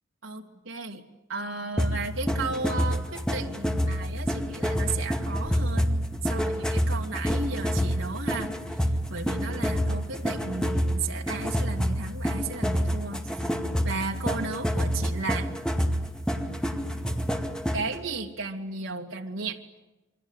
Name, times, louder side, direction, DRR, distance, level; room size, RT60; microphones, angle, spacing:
voice 1, 0.2-8.5 8.8-13.2 13.8-15.5 17.7-19.6, right 4 dB, 75° right, 2 dB, 2.6 m, -34 dB
sound 1, 1.8-18.0, equal, 5° left, 2.1 m, -28 dB
28.5 x 24.5 x 8.2 m, 1.0 s
head